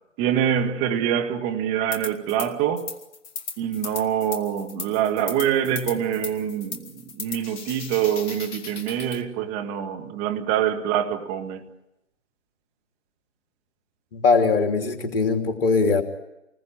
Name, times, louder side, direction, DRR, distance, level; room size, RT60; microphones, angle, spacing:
voice 1, 0.2-2.9 3.6-11.6, right 9 dB, 20° right, 1.9 m, -25 dB
sound 1, 1.9-2.5 2.8-9.2, left 6 dB, 15° left, 1.2 m, -36 dB
voice 2, 14.1-16.0, left 4 dB, 50° left, 3.1 m, -21 dB
28.5 x 20.0 x 9.0 m
figure-of-eight pair, 140°, 37 cm